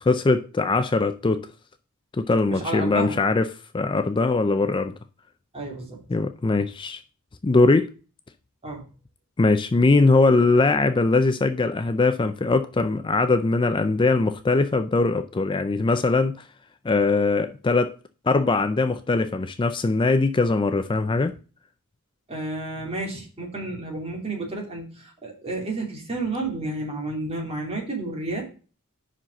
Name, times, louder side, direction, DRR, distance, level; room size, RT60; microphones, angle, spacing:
voice 1, 0.0-1.5 2.1-3.5 3.7-4.9 6.1-7.0 7.4-7.9 9.4-16.3 16.8-17.9 18.3-21.4, left 3 dB, 25° left, 0.4 m, -21 dB
voice 2, 2.5-3.2 5.5-6.0 8.6-8.9 22.3-28.4, right 2 dB, 30° right, 2.7 m, -31 dB
5.6 x 5.1 x 6.4 m
head